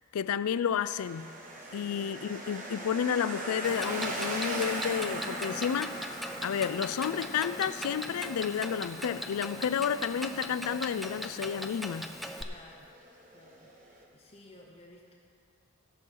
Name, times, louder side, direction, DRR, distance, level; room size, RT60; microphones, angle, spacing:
voice 1, 0.1-1.3 1.7-5.9 6.4-12.1, left 8 dB, 90° left, 15 dB, 0.4 m, -31 dB
sound 1, 0.9-14.0, right 1 dB, 35° right, 1.2 m, -41 dB
voice 2, 1.5-2.4 12.4-12.9 13.3-15.1, left 1 dB, 30° left, -1 dB, 0.8 m, -55 dB
Clock, 3.6-12.4, equal, ahead, 0.4 m, -39 dB
17.0 x 6.2 x 4.6 m, 2.4 s
head